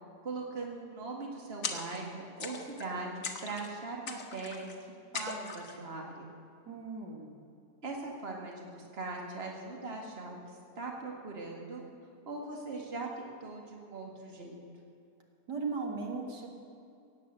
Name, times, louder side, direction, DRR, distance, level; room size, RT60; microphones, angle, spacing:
voice 1, 0.2-4.7 5.1-6.3 7.8-10.4 10.8-11.8 12.3-14.5, right 3 dB, 35° right, 0 dB, 2.2 m, -40 dB
sound 1, 1.6-2.1 2.4-2.9 3.2-3.7 4.1-4.7 5.1-5.8, left 5 dB, 55° left, 1.6 m, -40 dB
voice 2, 6.7-7.3 15.5-16.5, right 4 dB, 85° right, 1 dB, 2.5 m, -37 dB
17.0 x 8.9 x 7.8 m, 2.6 s
omnidirectional pair, 1.8 m